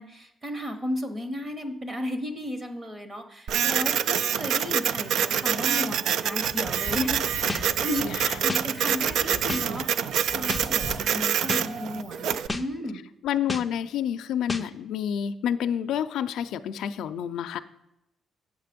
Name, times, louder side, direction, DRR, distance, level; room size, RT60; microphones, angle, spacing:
voice 1, 0.0-8.0 8.4-13.0, left 1 dB, 25° right, 7 dB, 1.0 m, -34 dB
Printer, 3.5-12.5, right 8 dB, 65° right, 0.3 m, -26 dB
sound 1, 6.3-9.8 10.1-11.0, equal, 40° right, 1.5 m, -40 dB
sound 2, 7.5-7.6 8.5-8.6 9.5-9.6 10.5-10.6 11.5-11.6 12.5-12.6 13.5-13.6 14.5-14.6, left 2 dB, 10° left, 0.5 m, -30 dB
voice 2, 13.2-17.6, left 9 dB, 85° left, 10 dB, 0.4 m, -29 dB
8.1 x 6.7 x 5.1 m, 0.89 s
cardioid pair, 170°, 0 cm